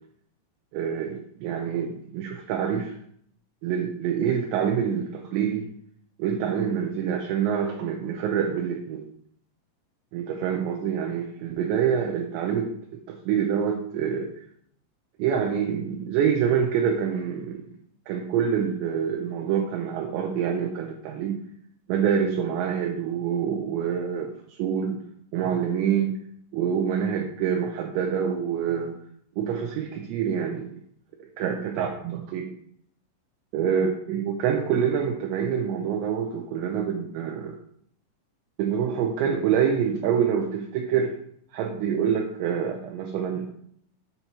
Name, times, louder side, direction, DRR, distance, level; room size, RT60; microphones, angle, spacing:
voice 1, 0.7-2.9 3.6-5.7 6.2-9.1 10.1-12.7 13.1-14.3 15.2-17.7 18.1-21.4 21.9-25.0 25.3-26.2 26.5-29.0 29.4-30.7 31.4-32.6 33.5-37.6 38.6-41.2 41.5-43.5, right 8 dB, 85° right, 2 dB, 2.6 m, -26 dB
7.9 x 2.9 x 5.5 m, 0.65 s
omnidirectional pair, 5.7 m